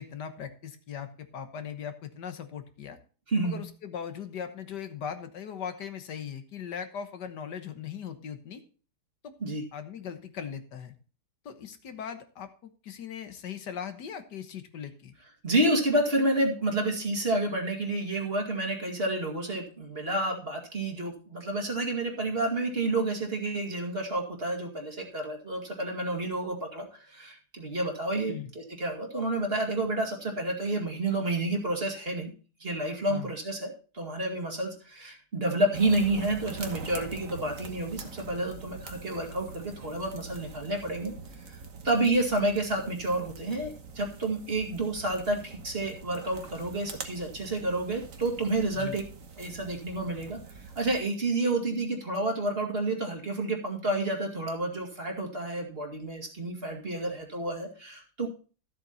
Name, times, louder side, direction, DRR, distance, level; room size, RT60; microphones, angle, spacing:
voice 1, 0.0-3.0 3.4-8.6 9.2-9.3 9.7-10.9 11.5-15.1 28.3-28.5 33.1-33.3 48.8-49.0, left 8 dB, 80° left, 9 dB, 1.8 m, -39 dB
voice 2, 3.3-3.6 9.4-9.6 15.4-32.3 32.6-41.1 41.5-41.6 41.8-49.0 49.4-50.4 50.8-58.3, right 2 dB, 35° right, 2 dB, 2.3 m, -30 dB
sound 1, 35.7-51.0, right 5 dB, 50° right, 1.6 m, -44 dB
13.0 x 7.8 x 4.2 m, 0.37 s
omnidirectional pair, 1.8 m